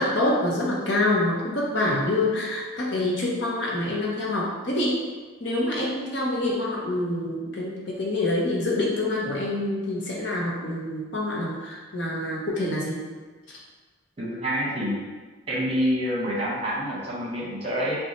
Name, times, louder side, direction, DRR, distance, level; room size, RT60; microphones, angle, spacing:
voice 1, 0.0-5.0 5.4-13.0, left 1 dB, 55° left, -3 dB, 0.9 m, -26 dB
voice 2, 14.2-15.0 15.5-18.0, equal, 30° right, -6 dB, 1.1 m, -27 dB
5.5 x 2.3 x 3.1 m, 1.4 s
head